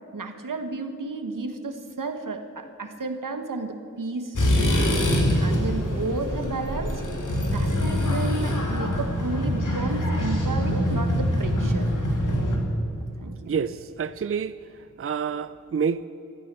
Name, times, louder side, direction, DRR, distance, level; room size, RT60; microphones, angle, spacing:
voice 1, 0.1-4.9 5.4-7.0 7.4-11.9 13.2-13.5, right 3 dB, 85° right, 7 dB, 1.3 m, -32 dB
sound 1, 4.3-12.6, equal, 75° left, 2.6 m, -24 dB
voice 2, 13.5-14.6 15.0-16.0, right 6 dB, 45° right, 14 dB, 0.4 m, -28 dB
15.0 x 13.5 x 6.9 m, 2.6 s
wide cardioid pair, 60°, 31 cm